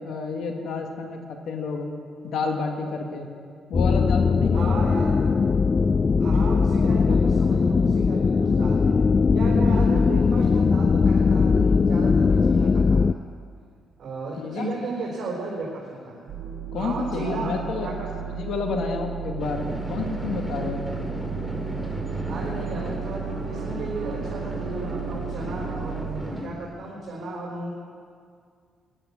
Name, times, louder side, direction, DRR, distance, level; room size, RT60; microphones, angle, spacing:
voice 1, 0.0-1.9 2.2-3.3 3.7-5.1 14.4-14.7 16.7-17.9 18.3-20.8, left 4 dB, 75° left, 3 dB, 1.9 m, -30 dB
sound 1, 3.7-13.1, left 5 dB, 35° left, 0.3 m, -20 dB
voice 2, 4.5-5.1 6.2-8.9 9.3-13.1 14.0-16.3 16.7-17.6 17.8-18.1 22.3-27.7, right 3 dB, 55° right, -4 dB, 3.9 m, -34 dB
sound 2, 16.3-26.2, right 8 dB, 85° right, 1.5 m, -34 dB
sound 3, 19.4-26.5, equal, ahead, 2.3 m, -34 dB
14.0 x 11.0 x 8.5 m, 2.2 s
cardioid pair, 90°, 0 cm